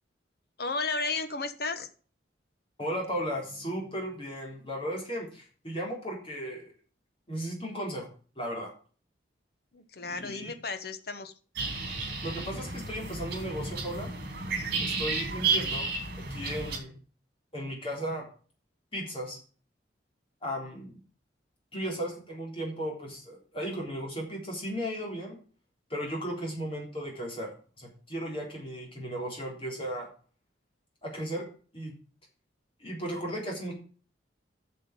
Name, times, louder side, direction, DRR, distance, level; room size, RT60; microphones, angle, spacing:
voice 1, 0.6-1.9 9.7-11.3, left 3 dB, 55° left, 9 dB, 1.1 m, -33 dB
voice 2, 2.8-6.7 7.3-8.1 8.4-8.7 10.0-10.5 12.2-14.1 14.8-15.9 16.3-17.0 17.5-18.3 18.9-19.4 20.4-20.9 21.7-25.4 25.9-27.5 27.8-30.1 31.0-31.5 31.7-32.0 32.8-33.7, equal, 30° left, -1 dB, 3.6 m, -35 dB
sound 1, 11.6-16.8, right 4 dB, 50° right, 2.7 m, -32 dB
7.5 x 6.8 x 7.5 m, 0.41 s
head